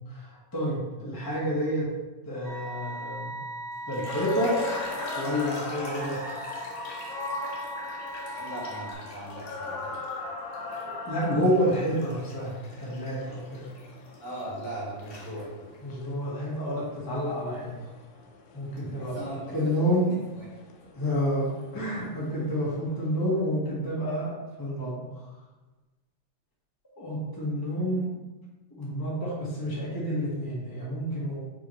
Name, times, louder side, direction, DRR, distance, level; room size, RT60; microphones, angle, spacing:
voice 1, 0.1-1.9 2.3-3.3 3.9-4.6 5.1-6.2 11.0-12.5 12.8-13.7 15.8-17.7 18.5-19.1 19.5-20.1 21.0-24.3 24.6-25.1 27.0-28.1 28.8-31.4, equal, 15° left, -7 dB, 0.8 m, -29 dB
sound 1, 2.4-8.9, right 2 dB, 80° right, 1.1 m, -39 dB
sound 2, 3.7-10.2 10.5-14.7 15.0-15.8, left 2 dB, 60° left, 2.1 m, -44 dB
sound 3, 4.1-23.1, left 3 dB, 80° left, 2.0 m, -40 dB
voice 2, 8.4-10.0 14.2-15.7 18.7-19.7 20.0-20.5, right 1 dB, 40° left, -6 dB, 1.9 m, -39 dB
5.6 x 4.6 x 4.5 m, 1.1 s
omnidirectional pair, 3.6 m